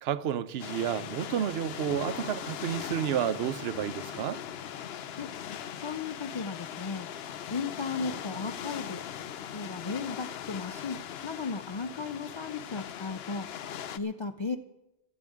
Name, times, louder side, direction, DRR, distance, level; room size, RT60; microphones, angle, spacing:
voice 1, 0.0-4.4, right 9 dB, 75° right, 0.8 m, -31 dB
sound 1, 0.6-14.0, left 9 dB, 75° left, 0.8 m, -40 dB
voice 2, 5.8-7.1 7.5-9.0 9.5-13.5 13.9-14.6, left 4 dB, 50° left, 0.3 m, -35 dB
13.0 x 7.1 x 9.8 m
omnidirectional pair, 1.1 m